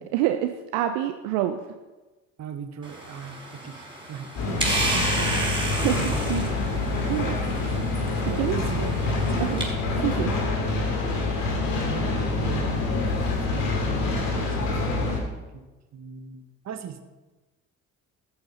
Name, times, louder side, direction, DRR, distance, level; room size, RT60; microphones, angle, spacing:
voice 1, 0.1-1.6 5.8-6.4 7.1-7.3 8.4-8.6 9.4-9.6 10.0-10.3, right 13 dB, 70° right, 7 dB, 0.7 m, -26 dB
voice 2, 2.4-3.8 4.1-6.2 6.6-7.4 8.3-9.0 9.3-9.6 11.8-12.9 13.5-15.2 15.5-17.0, right 8 dB, 45° right, 9 dB, 1.2 m, -38 dB
sound 1, 2.8-9.7, right 1 dB, 15° right, 4.0 m, -32 dB
sound 2, 4.4-15.2, left 3 dB, 65° left, 2.5 m, -26 dB
13.0 x 7.0 x 5.3 m, 1.2 s
hypercardioid pair, 50°, 37 cm